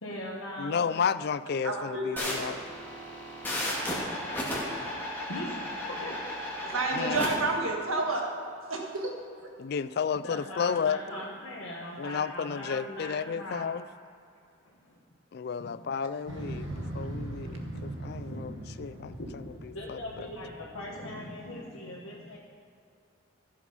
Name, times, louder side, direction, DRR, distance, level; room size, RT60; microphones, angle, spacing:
voice 1, 0.0-0.9 5.3-6.3 10.2-13.6 14.6-15.0 18.3-18.4 19.2-19.3 19.7-22.4, left 1 dB, 75° left, -5 dB, 1.5 m, -40 dB
voice 2, 0.6-2.6 6.9-7.2 9.6-11.0 12.0-13.8 15.3-19.4 19.9-20.3, left 6 dB, 50° left, 15 dB, 0.3 m, -32 dB
voice 3, 1.6-2.5 6.6-8.3 8.7-9.1 11.1-11.2, right 2 dB, 85° right, 1 dB, 1.8 m, -30 dB
sound 1, 2.2-7.3, left 1 dB, 10° left, 2.1 m, -34 dB
Motorcycle, 16.3-21.5, right 1 dB, 65° right, 1.7 m, -40 dB
14.0 x 7.5 x 5.6 m, 2.5 s
head